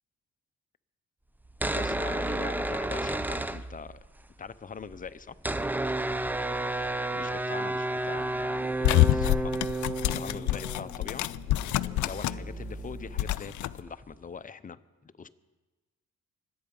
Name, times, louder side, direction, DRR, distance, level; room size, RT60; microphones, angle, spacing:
sound 1, 1.5-4.2 4.5-4.6 4.7-14.2, right 2 dB, 5° right, 0.5 m, -32 dB
voice 1, 1.7-4.0 4.4-5.4 7.1-9.5 10.1-11.3 12.0-15.3, left 6 dB, 25° left, 13 dB, 0.7 m, -42 dB
sound 2, 8.8-12.5 12.8-13.7, left 17 dB, 75° left, 0.5 m, -27 dB
24.0 x 8.8 x 5.4 m, 1.2 s
cardioid pair, 90°, 30 cm